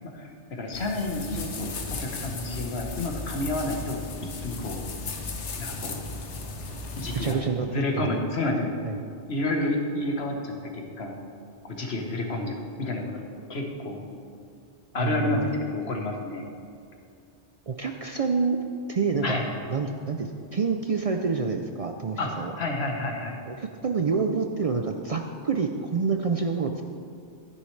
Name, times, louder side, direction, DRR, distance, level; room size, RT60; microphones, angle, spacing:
voice 1, 0.1-1.7 2.0-4.0 4.4-4.8 5.6-6.0 7.0-7.4 7.7-8.7 9.3-11.2 11.6-13.2 13.5-14.0 14.9-16.5 19.2-19.5 22.2-22.3 22.6-23.4, left 2 dB, 65° left, 2 dB, 1.4 m, -30 dB
sound 1, 0.7-7.3, left 3 dB, 80° left, 1.2 m, -36 dB
voice 2, 7.1-8.2 8.8-9.0 15.0-15.5 17.7-18.6 18.9-19.4 19.7-22.5 23.5-26.8, right 5 dB, 55° right, 4 dB, 0.4 m, -27 dB
12.5 x 9.9 x 3.3 m, 2.4 s
omnidirectional pair, 1.2 m